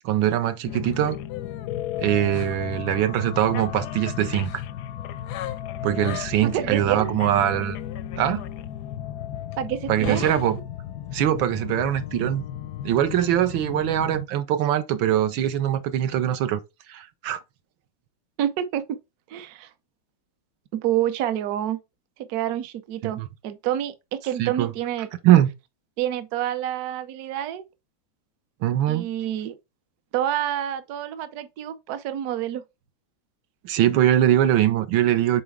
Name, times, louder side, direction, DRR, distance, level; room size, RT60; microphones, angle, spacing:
voice 1, 0.0-1.2 2.0-4.5 5.8-7.8 8.2-8.4 9.9-10.6 11.1-12.4 12.8-16.6 16.9-17.4 23.0-23.3 24.4-24.7 25.2-25.5 28.6-29.1 33.6-35.4, right 12 dB, 80° right, 1.4 m, -22 dB
sound 1, 0.7-14.2, left 11 dB, 75° left, 0.9 m, -34 dB
voice 2, 6.5-7.1 9.6-10.3 18.4-19.0 19.3-19.7 20.7-21.8 22.3-25.1 26.0-27.6 28.9-29.5 30.1-32.6, right 11 dB, 65° right, 1.0 m, -28 dB
7.0 x 4.3 x 3.5 m
omnidirectional pair, 2.2 m